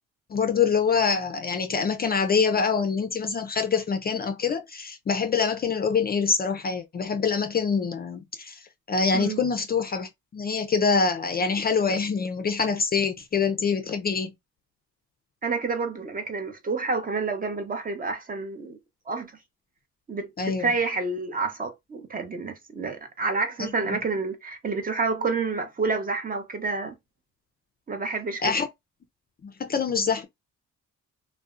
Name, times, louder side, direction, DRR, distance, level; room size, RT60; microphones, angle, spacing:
voice 1, 0.3-14.3 20.4-20.7 23.6-23.7 28.4-28.7 29.4-30.3, left 5 dB, 30° left, 0.4 m, -25 dB
voice 2, 15.4-18.8 19.1-19.3 20.1-26.9 27.9-28.5, right 4 dB, 30° right, 0.6 m, -29 dB
2.6 x 2.1 x 2.4 m
cardioid pair, 90°, 30 cm